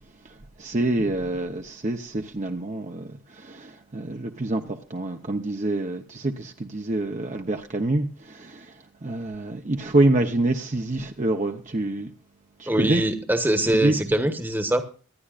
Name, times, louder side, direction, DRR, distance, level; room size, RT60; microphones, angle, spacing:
voice 1, 0.2-12.1 12.6-13.0 13.7-14.0, right 2 dB, 35° right, 0.8 m, -26 dB
voice 2, 12.7-14.8, right 1 dB, 10° right, 1.1 m, -23 dB
25.5 x 10.0 x 2.5 m
head